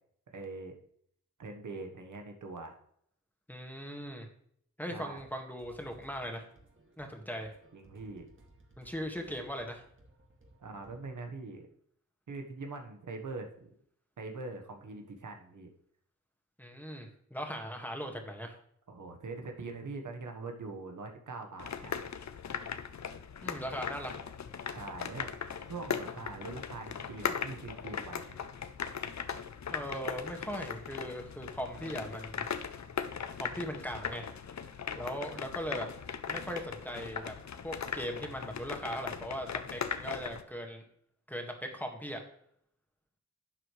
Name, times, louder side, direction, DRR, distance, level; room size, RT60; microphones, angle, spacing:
voice 1, 0.3-0.7 1.4-2.8 4.9-5.2 7.7-8.2 10.6-11.6 12.3-13.5 14.2-15.7 18.9-22.0 24.7-25.3 25.7-28.4, right 3 dB, 85° right, 4 dB, 1.4 m, -43 dB
voice 2, 3.5-4.3 4.8-6.5 7.0-7.6 8.8-9.8 16.6-18.5 23.4-24.1 29.7-32.5 33.4-34.3 34.9-35.9 36.3-37.3 37.6-40.8 41.3-42.2, equal, 5° left, 3 dB, 1.9 m, -39 dB
sound 1, 5.2-11.2, right 1 dB, 40° right, 2.3 m, -61 dB
sound 2, 21.6-40.4, left 7 dB, 65° left, 0.7 m, -39 dB
11.5 x 7.7 x 3.3 m, 0.67 s
wide cardioid pair, 75°, 30 cm